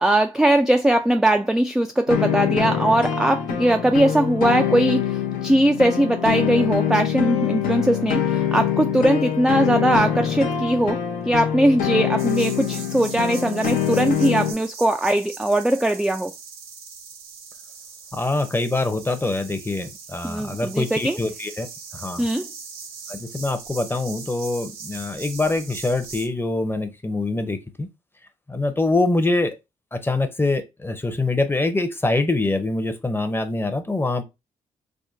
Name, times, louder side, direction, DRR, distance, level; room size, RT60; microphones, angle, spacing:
voice 1, 0.0-16.3 20.2-21.2 22.2-22.5, right 1 dB, 5° right, 0.3 m, -20 dB
sound 1, 2.1-14.5, left 9 dB, 70° left, 0.7 m, -24 dB
sound 2, 12.2-26.3, right 5 dB, 90° right, 0.7 m, -40 dB
voice 2, 18.1-21.7 21.9-22.3 23.1-27.9 28.5-29.5 29.9-34.2, left 2 dB, 15° left, 0.7 m, -24 dB
3.5 x 2.2 x 2.7 m
supercardioid pair, 55°, 15 cm